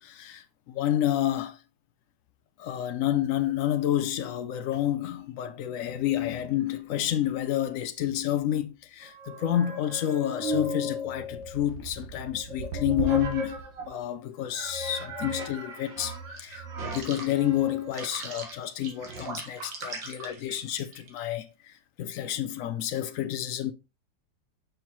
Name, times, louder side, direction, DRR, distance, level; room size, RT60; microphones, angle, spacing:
voice 1, 0.0-1.6 2.6-23.7, left 12 dB, 90° left, 0.7 m, -29 dB
sound 1, 9.0-14.0 14.5-21.2, equal, 80° right, 2.2 m, -36 dB
6.7 x 5.7 x 3.0 m
omnidirectional pair, 2.0 m